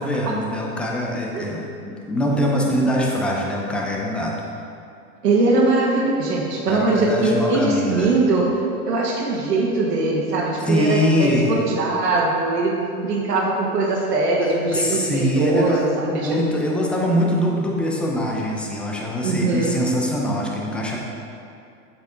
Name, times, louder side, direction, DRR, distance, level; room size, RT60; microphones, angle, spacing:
voice 1, 0.0-4.3 6.7-8.2 10.6-11.6 14.4-21.0, equal, 5° left, -2 dB, 0.3 m, -23 dB
voice 2, 2.6-2.9 5.2-8.5 8.9-16.4 19.2-19.8, right 3 dB, 85° right, -3 dB, 1.4 m, -21 dB
8.0 x 6.7 x 3.7 m, 2.5 s
hypercardioid pair, 115°, 47 cm